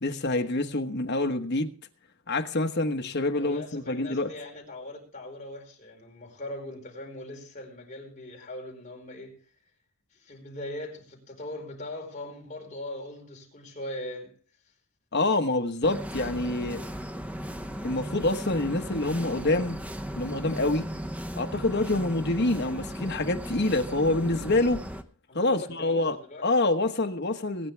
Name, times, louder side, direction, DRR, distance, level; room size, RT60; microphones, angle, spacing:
voice 1, 0.0-1.7 2.3-4.3 15.1-16.8 17.8-19.8 20.1-20.9 21.3-24.8 25.3-26.2 26.4-27.7, left 2 dB, 50° left, 1.2 m, -26 dB
voice 2, 3.3-9.4 10.1-14.4 25.3-26.4, left 1 dB, 35° left, 4.7 m, -40 dB
sound 1, 15.8-25.0, equal, 5° right, 0.7 m, -36 dB
21.5 x 9.7 x 3.4 m
head